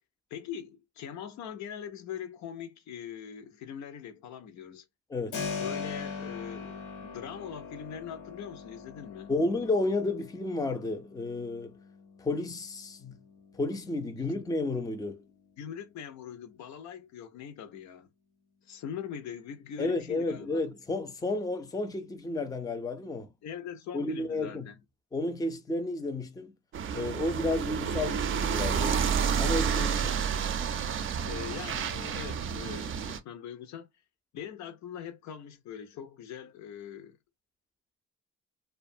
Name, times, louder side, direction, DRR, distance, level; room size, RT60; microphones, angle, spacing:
voice 1, 0.3-4.9 5.6-9.3 14.2-14.3 15.6-18.1 18.6-20.6 23.4-24.8 29.7-30.0 31.2-33.9 34.3-37.2, left 8 dB, 65° left, 0.5 m, -42 dB
voice 2, 5.1-5.4 9.3-11.8 12.2-13.2 13.5-15.2 19.8-23.3 23.9-24.7 25.1-26.5 26.9-29.0 29.4-30.1, left 2 dB, 10° left, 0.5 m, -32 dB
Keyboard (musical), 5.3-16.0, left 5 dB, 90° left, 0.9 m, -42 dB
sound 1, 26.7-33.2, right 7 dB, 45° right, 0.4 m, -30 dB
2.4 x 2.2 x 2.6 m
cardioid pair, 90°, 30 cm